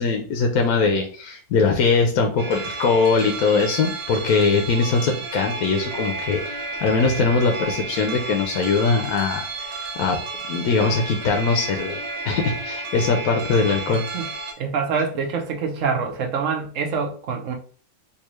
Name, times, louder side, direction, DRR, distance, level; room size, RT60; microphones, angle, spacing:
voice 1, 0.0-9.4 10.0-10.2 10.5-12.0 12.2-14.0, left 4 dB, 75° left, 2 dB, 1.1 m, -21 dB
sound 1, 2.4-14.5, right 3 dB, 80° right, 0.3 m, -32 dB
voice 2, 13.9-14.3 14.6-17.5, right 5 dB, 65° right, 3 dB, 1.0 m, -26 dB
3.5 x 2.7 x 3.1 m, 0.42 s
omnidirectional pair, 1.6 m